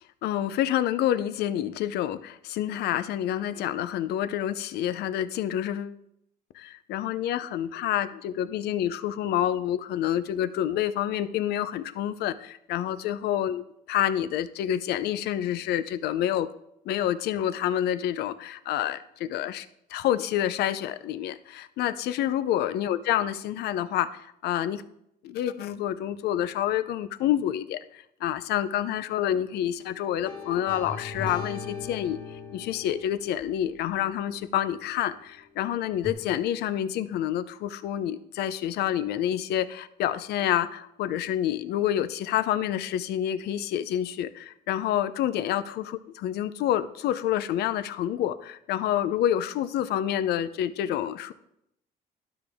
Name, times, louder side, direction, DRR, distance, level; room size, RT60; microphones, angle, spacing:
voice 1, 0.2-6.0 6.5-13.6 13.9-16.5 16.9-19.7 19.9-24.8 25.2-32.2 32.5-51.3, left 11 dB, 75° left, 14 dB, 0.5 m, -28 dB
sound 1, 30.2-35.2 36.0-36.1, left 5 dB, 30° left, 1.7 m, -40 dB
12.0 x 5.1 x 3.5 m, 0.78 s
cardioid pair, 110°, 17 cm